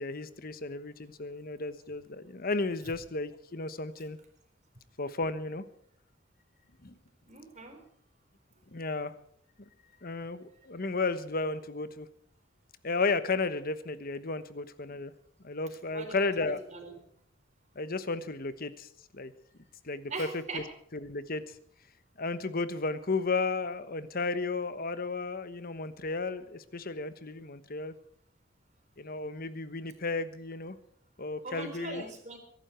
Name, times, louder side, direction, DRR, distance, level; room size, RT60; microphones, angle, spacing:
voice 1, 0.0-4.2 5.0-5.6 6.8-7.0 8.7-9.1 10.0-12.1 12.8-15.1 15.4-16.6 17.7-19.3 19.8-20.6 20.9-21.6 22.2-27.9 29.0-30.8 31.2-32.0, left 3 dB, 50° left, 13 dB, 1.2 m, -33 dB
voice 2, 7.3-7.8 15.9-17.0 20.1-20.6 31.4-32.4, right 3 dB, 40° right, 5 dB, 4.1 m, -41 dB
23.0 x 12.0 x 4.5 m, 0.67 s
head